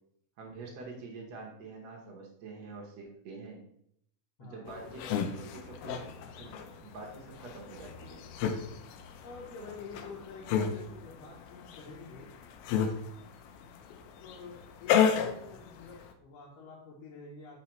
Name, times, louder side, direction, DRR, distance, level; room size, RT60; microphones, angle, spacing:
voice 1, 0.4-3.6 4.4-8.2, right 3 dB, 80° right, 0 dB, 1.5 m, -46 dB
voice 2, 4.4-4.9 9.2-12.3 14.2-17.6, left 4 dB, 70° left, -4 dB, 2.3 m, -48 dB
sound 1, 4.7-16.1, left 7 dB, 85° left, 2.5 m, -33 dB
6.9 x 4.7 x 3.0 m, 0.72 s
omnidirectional pair, 4.3 m